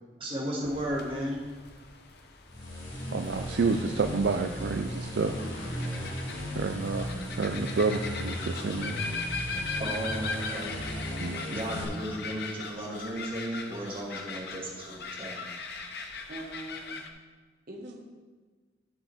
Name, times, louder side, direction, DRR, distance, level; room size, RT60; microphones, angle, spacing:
voice 1, 0.2-1.4 9.8-10.8 11.5-15.5, right 1 dB, 30° right, -5 dB, 2.1 m, -34 dB
sound 1, 0.6-17.1, left 4 dB, 55° left, 0.8 m, -40 dB
sound 2, 2.5-11.8, equal, 80° left, 2.8 m, -36 dB
voice 2, 3.1-5.3 6.5-7.1 7.3-9.0 11.2-11.6, right 4 dB, 65° right, 6 dB, 0.4 m, -29 dB
voice 3, 5.3-5.8 16.3-17.0 17.7-18.0, right 1 dB, 50° right, 0 dB, 1.6 m, -42 dB
12.5 x 7.4 x 3.6 m, 1.4 s
head